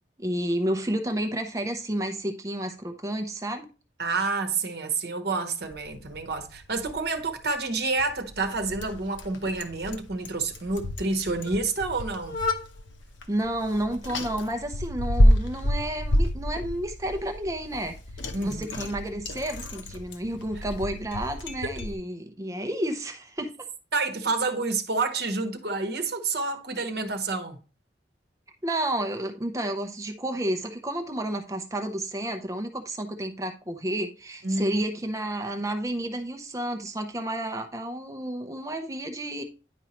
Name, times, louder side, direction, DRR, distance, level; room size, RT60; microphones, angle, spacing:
voice 1, 0.2-3.7 13.3-17.9 18.4-23.7 28.6-39.4, right 1 dB, 15° right, 0.6 m, -31 dB
voice 2, 4.0-12.4 18.3-18.8 23.9-27.6 34.4-34.8, right 3 dB, 60° right, 1.0 m, -29 dB
Bicycle, 5.6-21.9, left 1 dB, 90° left, 0.8 m, -29 dB
10.0 x 4.5 x 2.9 m
head